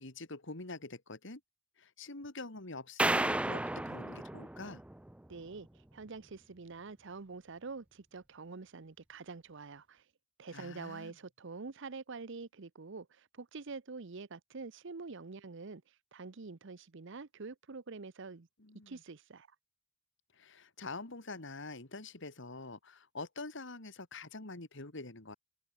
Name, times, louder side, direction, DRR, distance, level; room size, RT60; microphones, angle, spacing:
voice 1, 0.0-1.4 1.8-4.8 10.5-11.1 18.6-19.0 20.3-25.4, left 3 dB, 65° left, 2.6 m, -45 dB
sound 1, 3.0-5.3, right 1 dB, 5° right, 0.3 m, -33 dB
voice 2, 5.3-5.7 5.9-10.0 10.4-13.1 13.4-15.8 16.1-18.5 18.9-19.5, right 4 dB, 65° right, 0.8 m, -46 dB
head